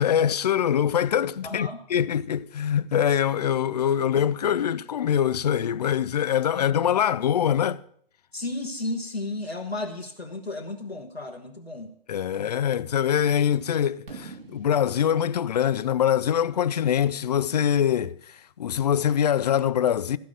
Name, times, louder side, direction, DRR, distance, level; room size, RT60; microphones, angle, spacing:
voice 1, 0.0-7.8 12.1-20.2, left 9 dB, 40° left, 0.5 m, -24 dB
voice 2, 1.4-1.8 6.5-6.9 8.3-11.9, left 2 dB, 85° left, 1.5 m, -33 dB
Fireworks, 14.1-17.9, right 4 dB, 65° right, 2.7 m, -48 dB
13.5 x 6.1 x 8.8 m
figure-of-eight pair, 125°, 30 cm